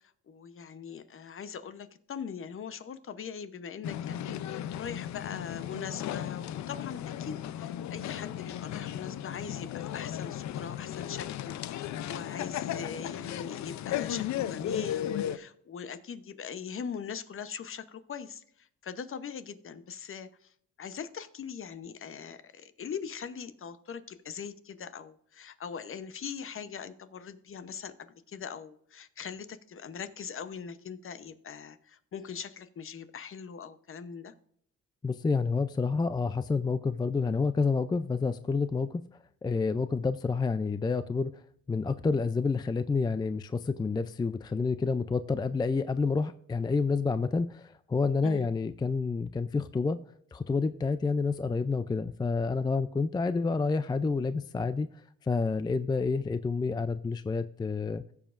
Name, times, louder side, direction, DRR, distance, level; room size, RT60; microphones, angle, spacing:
voice 1, 0.3-20.5 20.8-34.3 48.2-48.5, left 7 dB, 45° left, 11 dB, 0.8 m, -41 dB
sound 1, 3.8-15.4, left 11 dB, 65° left, 0.5 m, -35 dB
voice 2, 35.0-39.0 39.4-41.3 41.7-50.0 50.3-54.9 55.2-58.0, left 4 dB, 15° left, 12 dB, 0.3 m, -29 dB
16.0 x 7.1 x 2.5 m, 0.66 s
cardioid pair, 90°, 30 cm